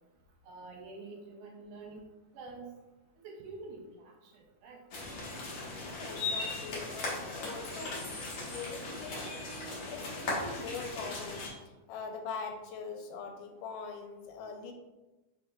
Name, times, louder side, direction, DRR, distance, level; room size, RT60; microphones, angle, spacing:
voice 1, 0.4-2.0 2.3-2.7 3.2-4.8, right 3 dB, 80° right, 1 dB, 2.0 m, -47 dB
sound 1, 4.9-11.5, left 2 dB, 65° left, 1.3 m, -38 dB
voice 2, 5.7-8.1 8.4-11.5 11.9-14.7, left 5 dB, 80° left, 3 dB, 2.2 m, -42 dB
5.2 x 4.3 x 2.3 m, 1.1 s
omnidirectional pair, 3.9 m